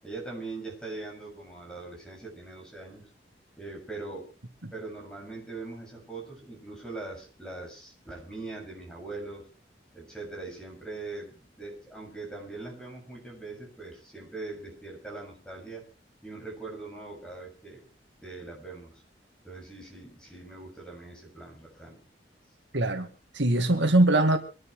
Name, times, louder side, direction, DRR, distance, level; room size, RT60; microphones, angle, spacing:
voice 1, 0.0-3.1 3.6-4.3 4.7-9.5 9.9-15.9 16.2-17.8 18.2-18.9 19.4-22.0, right 3 dB, 5° left, 7.3 m, -41 dB
voice 2, 22.7-24.4, right 2 dB, 75° right, 2.1 m, -23 dB
26.0 x 11.0 x 3.4 m
head